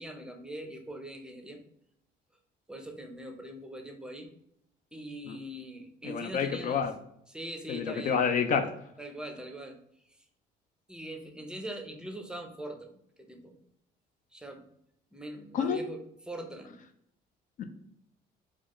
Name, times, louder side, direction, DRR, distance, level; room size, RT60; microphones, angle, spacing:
voice 1, 0.0-1.6 2.7-4.3 4.9-6.8 7.3-8.2 9.0-9.8 10.9-13.6 14.3-14.7 15.1-16.8, right 1 dB, 5° right, 4 dB, 0.5 m, -42 dB
voice 2, 6.0-6.9 7.7-8.7 15.5-15.8 17.6-17.7, left 6 dB, 50° left, 7 dB, 0.4 m, -28 dB
4.0 x 2.3 x 3.0 m, 0.73 s
cardioid pair, 110°, 17 cm